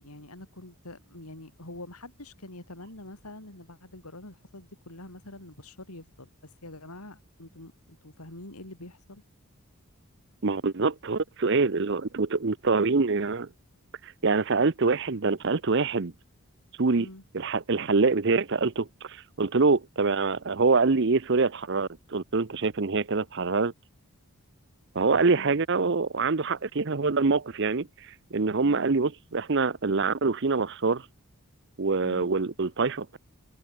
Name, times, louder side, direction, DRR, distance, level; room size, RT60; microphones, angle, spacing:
voice 1, 0.0-9.2 17.0-17.2 25.3-25.6 28.6-28.9 32.0-32.3, left 1 dB, 85° left, 4.8 m, -45 dB
voice 2, 10.4-13.5 14.0-16.1 16.8-17.1 17.3-23.7 24.9-27.9 28.3-31.1 31.8-33.2, right 4 dB, 55° right, 0.7 m, -25 dB
head